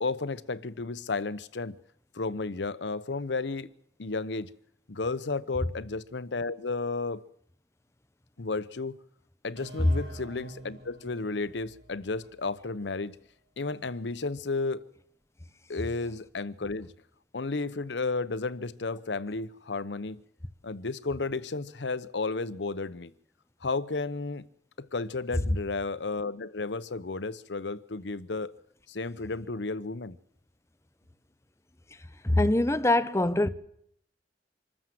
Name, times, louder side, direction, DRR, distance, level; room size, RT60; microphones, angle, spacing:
voice 1, 0.0-1.8 2.1-3.7 4.0-4.5 4.9-7.2 8.4-9.0 9.4-13.2 13.6-14.8 15.7-16.9 17.3-20.2 20.6-23.1 23.6-24.5 24.8-28.5 28.9-30.2, left 3 dB, 80° left, 0.8 m, -33 dB
sound 1, 9.6-13.1, right 1 dB, 70° right, 5.8 m, -49 dB
voice 2, 32.2-33.5, left 1 dB, 15° left, 0.9 m, -23 dB
25.5 x 13.5 x 7.7 m
head